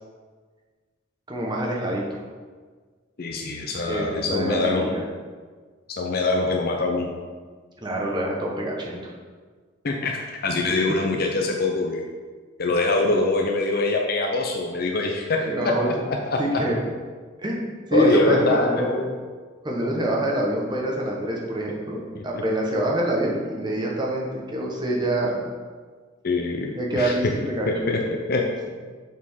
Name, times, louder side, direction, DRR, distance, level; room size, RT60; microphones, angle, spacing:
voice 1, 1.3-2.0 3.9-5.0 7.8-9.0 15.4-15.9 16.4-16.8 17.4-17.6 17.9-19.1 19.6-25.4 26.7-27.9, right 1 dB, 20° right, -2 dB, 1.3 m, -25 dB
voice 2, 3.2-4.9 5.9-7.1 9.8-12.0 12.6-16.4 17.9-19.1 19.8-19.9 22.1-22.2 26.2-27.1 27.7-28.7, left 3 dB, 50° left, 1 dB, 0.6 m, -24 dB
7.3 x 4.4 x 5.6 m, 1.5 s
head